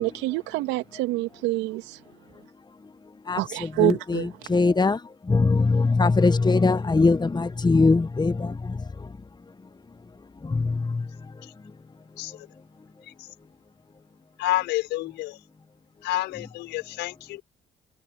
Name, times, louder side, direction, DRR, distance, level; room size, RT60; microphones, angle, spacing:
voice 1, 0.0-2.0 3.4-4.4, right 19 dB, 80° right, 2.8 m, -27 dB
voice 2, 4.5-5.0 5.3-8.5 10.4-11.0, left 3 dB, 25° left, 1.4 m, -21 dB
voice 3, 14.4-15.4 16.0-17.4, left 17 dB, 75° left, 5.3 m, -29 dB
hypercardioid pair, 50°, 18 cm